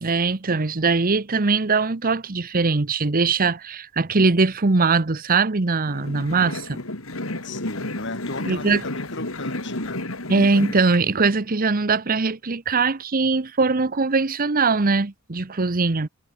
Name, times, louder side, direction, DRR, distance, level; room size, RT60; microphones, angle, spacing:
voice 1, 0.0-6.8 8.5-8.8 10.3-16.1, right 4 dB, 45° right, 1.0 m, -21 dB
sound 1, 5.8-11.0, left 2 dB, 80° left, 4.3 m, -32 dB
voice 2, 7.4-10.1, left 2 dB, 60° left, 7.0 m, -35 dB
head